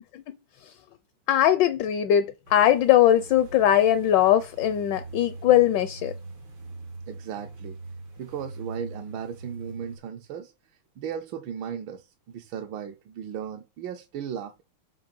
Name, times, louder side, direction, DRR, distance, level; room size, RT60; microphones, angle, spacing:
voice 1, 1.3-6.1, left 11 dB, 75° left, 1.0 m, -20 dB
sound 1, 2.4-10.0, right 3 dB, 90° right, 3.0 m, -42 dB
voice 2, 7.1-7.8 8.2-14.6, right 8 dB, 75° right, 1.4 m, -36 dB
7.7 x 2.8 x 5.3 m
omnidirectional pair, 2.4 m